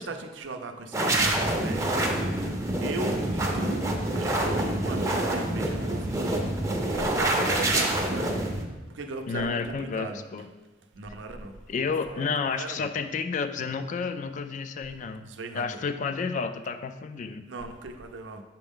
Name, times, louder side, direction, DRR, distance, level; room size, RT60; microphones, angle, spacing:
voice 1, 0.0-1.9 2.8-3.9 4.1-6.4 6.9-8.4 8.9-10.2 11.0-11.5 12.1-12.9 15.2-15.8 17.5-18.4, right 3 dB, 85° right, 6 dB, 0.6 m, -37 dB
sound 1, 0.9-8.6, right 1 dB, 15° right, 0.6 m, -26 dB
voice 2, 9.3-10.5 11.7-15.3 15.5-17.4, left 5 dB, 45° left, 9 dB, 0.3 m, -31 dB
6.1 x 4.4 x 3.6 m, 1.2 s
head